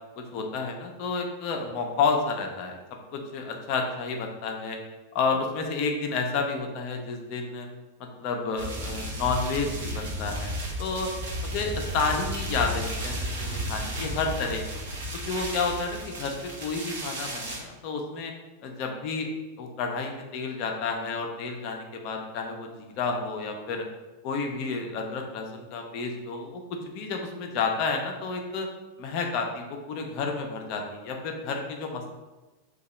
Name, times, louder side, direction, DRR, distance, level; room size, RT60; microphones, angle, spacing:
voice 1, 0.3-2.8 3.1-4.8 5.1-7.7 8.2-11.1 11.5-13.1 13.4-14.6 15.3-16.3 16.6-18.3 18.6-19.3 19.6-23.8 24.2-26.6 26.9-28.7 29.0-32.1, left 4 dB, 45° left, 3 dB, 0.5 m, -30 dB
sound 1, 8.6-17.6, equal, 55° right, 0.7 m, -33 dB
2.7 x 2.3 x 4.1 m, 1.2 s
figure-of-eight pair, 90°, 0 cm